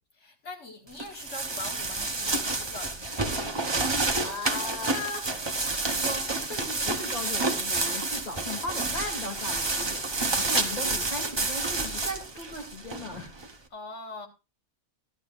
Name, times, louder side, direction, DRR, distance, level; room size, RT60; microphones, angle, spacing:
voice 1, 0.2-3.4 10.6-10.7 13.7-14.3, left 2 dB, 70° left, 2.1 m, -43 dB
sound 1, 1.0-13.5, right 3 dB, 25° right, 0.9 m, -29 dB
voice 2, 4.2-5.3 5.9-13.3, left 2 dB, 30° left, 2.7 m, -37 dB
13.0 x 12.0 x 2.5 m
omnidirectional pair, 1.3 m